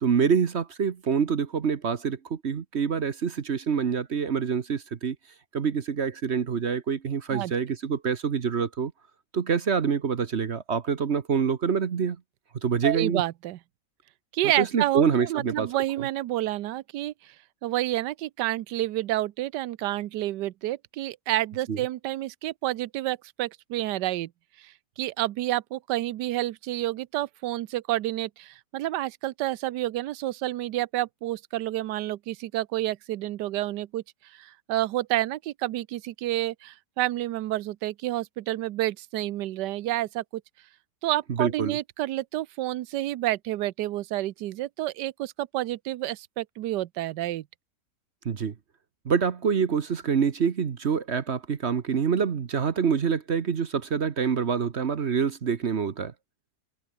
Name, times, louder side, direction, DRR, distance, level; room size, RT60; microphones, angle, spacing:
voice 1, 0.0-5.2 5.5-8.9 9.3-12.2 12.6-13.2 14.6-15.7 21.7-21.8 41.3-41.8 48.2-48.5 49.0-56.1, right 6 dB, 45° right, 1.1 m, -26 dB
voice 2, 12.8-13.6 14.3-17.3 17.6-24.3 24.6-34.0 34.3-40.4 41.0-47.4, right 15 dB, 80° right, 1.3 m, -29 dB
omnidirectional pair, 1.8 m